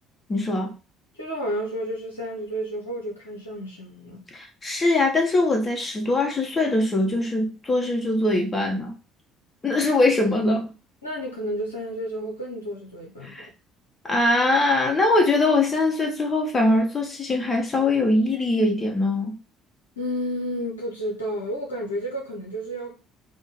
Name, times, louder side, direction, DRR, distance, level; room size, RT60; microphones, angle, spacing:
voice 1, 0.3-0.7 4.3-8.9 9.6-10.7 13.2-13.5 14.0-19.3, left 2 dB, 30° left, 1.1 m, -22 dB
voice 2, 1.1-4.2 11.0-13.5 20.0-23.0, equal, 85° left, 0.7 m, -31 dB
3.8 x 2.1 x 3.7 m
figure-of-eight pair, 55°, 0 cm